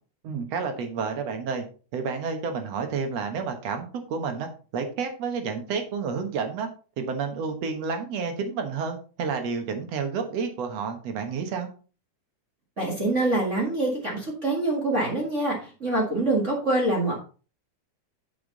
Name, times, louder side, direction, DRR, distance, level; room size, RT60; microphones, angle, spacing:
voice 1, 0.2-1.7 1.9-6.7 7.0-11.7, right 5 dB, 65° right, 5 dB, 2.2 m, -30 dB
voice 2, 12.8-17.1, right 2 dB, 30° right, -3 dB, 1.8 m, -25 dB
8.6 x 5.8 x 4.0 m, 0.37 s
omnidirectional pair, 3.4 m